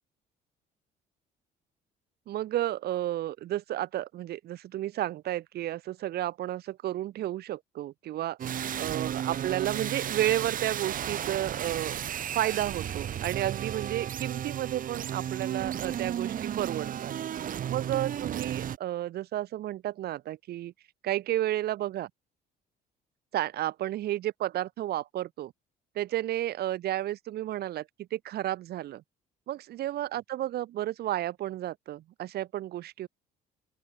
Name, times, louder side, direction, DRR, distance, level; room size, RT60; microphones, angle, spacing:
voice 1, 2.3-8.4 8.8-12.0 12.3-17.1 17.7-20.7 21.0-22.1 23.3-25.5 25.9-29.0 29.5-33.1, right 13 dB, 70° right, 4.9 m, -32 dB
sound 1, 8.4-18.8, right 10 dB, 55° right, 7.8 m, -34 dB
open air
cardioid pair, 110°, 17 cm